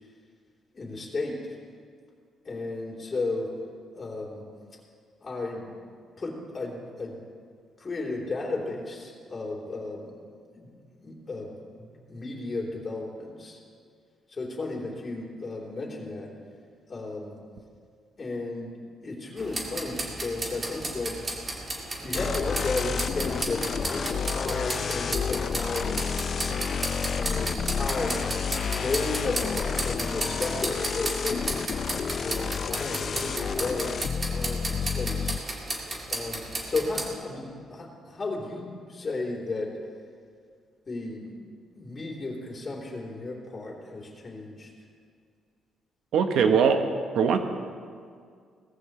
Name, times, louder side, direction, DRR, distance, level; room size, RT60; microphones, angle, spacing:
voice 1, 0.7-1.6 2.4-3.5 3.9-4.4 5.2-7.2 7.8-10.2 10.5-13.6 14.3-16.3 16.9-17.3 18.2-18.8 19.0-21.2 22.0-26.2 27.2-28.2 28.6-31.7 32.1-35.4 36.1-39.8 40.9-41.3 41.7-44.7, left 3 dB, 35° left, -2 dB, 3.6 m, -34 dB
sound 1, 19.4-37.1, right 2 dB, 30° right, 2.5 m, -34 dB
sound 2, 22.1-35.4, left 6 dB, 50° left, 0.4 m, -30 dB
voice 2, 46.1-46.8 47.1-47.4, right 6 dB, 80° right, 6 dB, 1.2 m, -21 dB
19.0 x 14.5 x 3.3 m, 2.1 s
cardioid pair, 90°, 0 cm